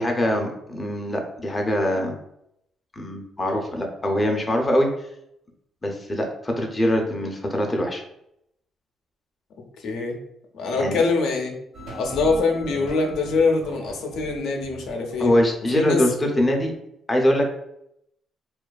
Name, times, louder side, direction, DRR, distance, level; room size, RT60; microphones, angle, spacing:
voice 1, 0.0-2.2 2.9-4.9 5.8-8.0 10.7-11.0 15.2-16.7 17.1-17.5, left 1 dB, 20° left, 1 dB, 0.5 m, -23 dB
voice 2, 9.8-10.2 10.5-11.6 11.9-15.3 15.7-16.0, left 3 dB, 80° left, 2 dB, 0.5 m, -23 dB
sound 1, 11.7-16.7, right 1 dB, 70° right, 1.1 m, -41 dB
2.5 x 2.3 x 2.2 m, 0.77 s
cardioid pair, 90°, 0 cm